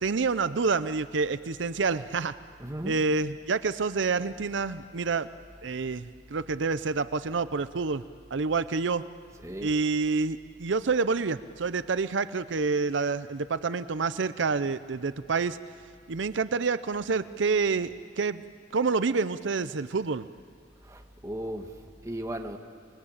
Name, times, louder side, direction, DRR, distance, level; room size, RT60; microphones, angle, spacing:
voice 1, 0.0-2.3 2.8-5.3 5.6-8.0 8.3-9.0 9.6-15.6 16.1-18.4 18.7-20.3, right 4 dB, 70° right, 0.6 m, -28 dB
voice 2, 2.6-3.0 9.4-9.7 20.8-22.6, right 1 dB, 15° right, 1.5 m, -37 dB
26.5 x 21.5 x 8.7 m
head